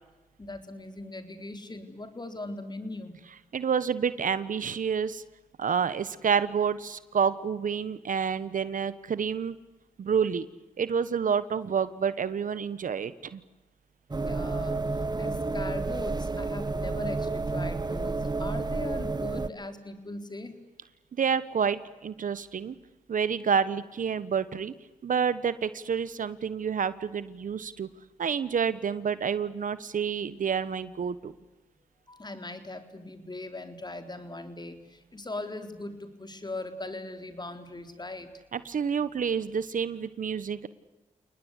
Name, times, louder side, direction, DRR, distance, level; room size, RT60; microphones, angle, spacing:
voice 1, 0.4-3.2 14.1-20.5 32.1-38.4, left 2 dB, 30° left, 8 dB, 4.0 m, -40 dB
voice 2, 3.5-5.2 5.6-9.6 10.0-10.5 10.8-13.4 21.1-22.8 23.1-24.7 25.0-27.9 28.2-31.3 38.5-40.7, right 7 dB, 65° right, 16 dB, 1.3 m, -28 dB
sound 1, 14.1-19.5, right 3 dB, 30° right, 1.2 m, -30 dB
30.0 x 19.5 x 8.3 m, 1.1 s
supercardioid pair, 50°, 15 cm